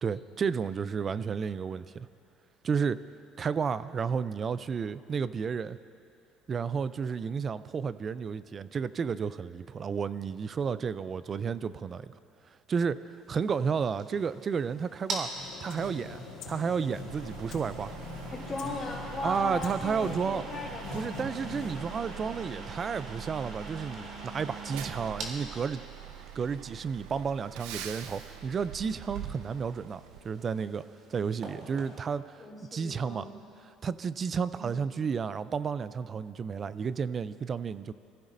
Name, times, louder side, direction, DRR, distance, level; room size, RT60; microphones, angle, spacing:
voice 1, 0.0-2.1 2.6-3.0 3.4-5.8 6.5-12.1 12.7-15.3 15.6-17.9 19.2-20.4 20.9-25.8 26.4-30.8 31.1-32.4 32.7-33.3 33.6-37.9, right 6 dB, 35° right, 15 dB, 0.4 m, -32 dB
sound 1, 13.2-32.0, right 2 dB, 55° right, 2.5 m, -45 dB
sound 2, 15.0-23.2, left 3 dB, 75° left, 3.7 m, -44 dB
Truck, 17.1-30.2, right 9 dB, 85° right, 0.7 m, -45 dB
voice 2, 18.3-21.3 32.4-33.4 34.5-34.9, left 2 dB, 25° left, -3 dB, 3.6 m, -38 dB
24.0 x 15.0 x 2.6 m, 2.6 s
supercardioid pair, 105°, 0 cm